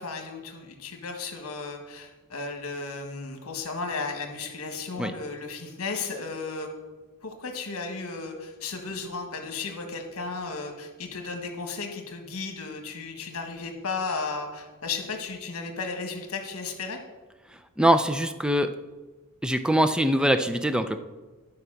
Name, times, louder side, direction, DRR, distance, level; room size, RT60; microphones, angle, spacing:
voice 1, 0.0-6.7 7.2-17.0, left 4 dB, 70° left, 4 dB, 1.5 m, -34 dB
voice 2, 17.8-18.7 19.4-21.0, equal, 5° right, 9 dB, 0.4 m, -23 dB
11.0 x 4.8 x 6.3 m, 1.2 s
head